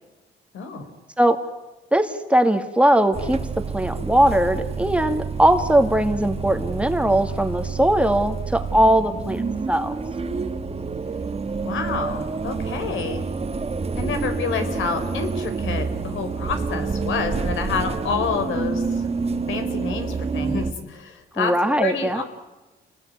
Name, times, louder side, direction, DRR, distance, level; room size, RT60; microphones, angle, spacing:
voice 1, 0.5-0.9 11.6-13.3 14.0-18.8 19.5-21.5 21.8-22.2, left 5 dB, 75° left, 8 dB, 4.2 m, -28 dB
voice 2, 1.9-9.9 21.4-22.2, right 1 dB, 5° right, 6 dB, 2.1 m, -20 dB
sound 1, 3.1-20.7, right 4 dB, 30° right, 1.8 m, -28 dB
28.0 x 19.5 x 9.4 m, 1.1 s
cardioid pair, 90°, 20 cm